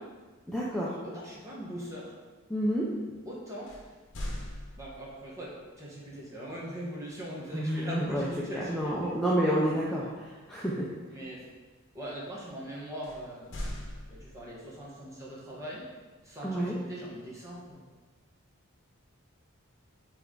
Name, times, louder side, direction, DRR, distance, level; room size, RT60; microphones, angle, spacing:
voice 1, 0.5-0.9 2.5-2.9 7.5-8.3 8.5-10.9 16.4-16.7, equal, ahead, -7 dB, 0.6 m, -29 dB
voice 2, 1.0-2.1 3.2-3.7 4.8-5.5 5.8-9.1 11.1-11.4 11.9-13.6 14.1-15.9 16.2-17.8, equal, 15° right, -5 dB, 1.3 m, -41 dB
sound 1, 3.7-5.3 8.0-8.4 8.8-9.0 13.0-14.7, left 1 dB, 60° left, 1.1 m, -40 dB
7.9 x 3.4 x 3.9 m, 1.3 s
head